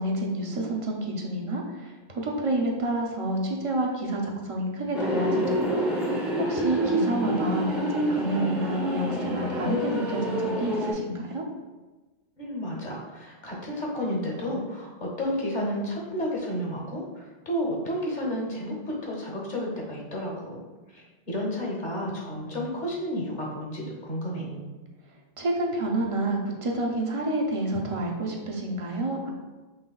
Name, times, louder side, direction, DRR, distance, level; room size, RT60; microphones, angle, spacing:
voice 1, 0.0-5.6 6.5-11.4 25.4-29.3, right 1 dB, 40° right, -1 dB, 0.6 m, -29 dB
sound 1, 4.9-10.9, right 1 dB, ahead, 0.7 m, -27 dB
voice 2, 12.4-20.6 20.9-24.7, equal, 50° left, -3 dB, 1.1 m, -31 dB
5.6 x 3.2 x 2.3 m, 1.2 s
omnidirectional pair, 1.1 m